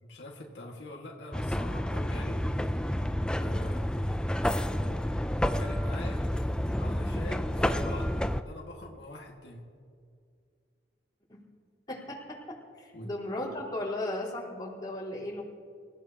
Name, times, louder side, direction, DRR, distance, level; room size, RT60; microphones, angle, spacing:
voice 1, 0.0-2.4 3.4-4.1 4.7-6.2 6.8-9.6 12.9-13.1, left 1 dB, 90° left, -1 dB, 1.9 m, -43 dB
sound 1, 1.3-8.4, equal, 5° left, 0.4 m, -30 dB
voice 2, 11.9-15.4, left 1 dB, 25° left, -6 dB, 4.1 m, -36 dB
27.0 x 15.5 x 2.9 m, 2.3 s
head